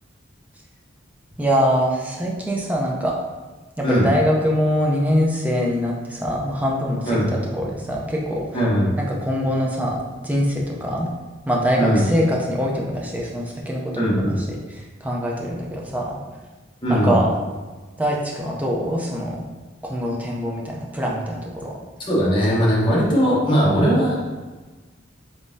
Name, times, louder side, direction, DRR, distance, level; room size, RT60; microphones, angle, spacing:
voice 1, 1.4-3.1 3.8-8.4 9.1-11.1 11.5-16.2 16.9-17.4 18.0-19.4 19.8-21.7, equal, 10° right, -2 dB, 0.5 m, -23 dB
voice 2, 8.5-8.9 11.8-12.0 14.0-14.4 16.8-17.2 22.1-24.2, equal, 25° left, -6 dB, 0.9 m, -19 dB
3.8 x 3.5 x 2.6 m, 1.3 s
head